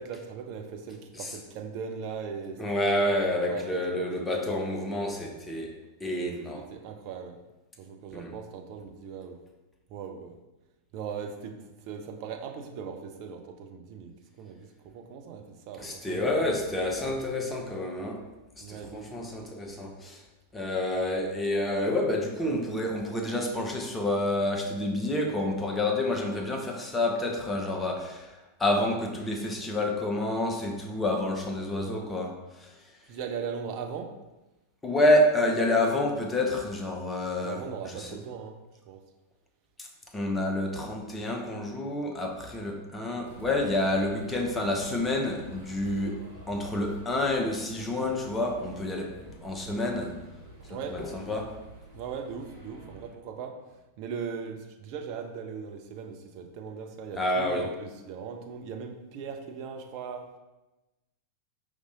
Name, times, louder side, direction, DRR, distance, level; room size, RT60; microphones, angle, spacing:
voice 1, 0.0-3.2 3.5-3.7 4.0-4.1 6.5-7.4 7.8-9.4 9.9-10.4 10.9-16.2 18.6-19.1 33.1-34.2 37.4-38.6 38.9-39.0 50.7-51.0 51.9-60.3, right 6 dB, 45° right, 4 dB, 0.5 m, -39 dB
voice 2, 2.6-6.8 8.1-8.3 15.8-18.3 18.6-20.2 20.5-32.7 34.8-38.1 39.8-39.9 40.1-50.2 50.7-51.6 57.2-57.7, left 1 dB, 10° left, 1 dB, 0.7 m, -29 dB
sound 1, 43.2-53.1, right 2 dB, 65° right, 1.0 m, -48 dB
4.7 x 2.7 x 3.8 m, 1.0 s
figure-of-eight pair, 90°, 0 cm